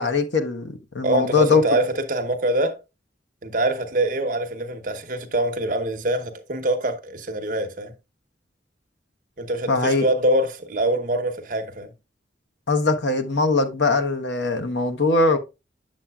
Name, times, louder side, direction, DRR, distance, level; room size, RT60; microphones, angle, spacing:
voice 1, 0.0-1.6 9.7-10.0 12.7-15.4, left 3 dB, 70° left, 1.0 m, -21 dB
voice 2, 1.0-2.8 3.4-7.9 9.4-11.9, right 1 dB, 45° right, 0.9 m, -24 dB
7.7 x 7.3 x 2.3 m
head